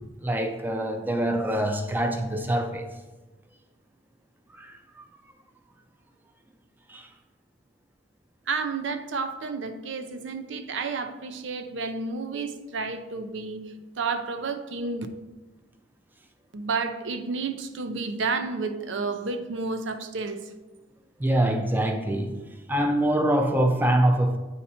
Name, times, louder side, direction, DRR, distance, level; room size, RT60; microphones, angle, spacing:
voice 1, 0.2-2.9 4.5-5.1 6.9-7.1 21.2-22.3 22.7-24.4, right 1 dB, 10° right, 5 dB, 0.4 m, -24 dB
voice 2, 8.5-13.6 14.0-15.1 16.5-20.4, right 4 dB, 80° right, 8 dB, 0.5 m, -31 dB
8.4 x 2.8 x 4.2 m, 1.2 s
head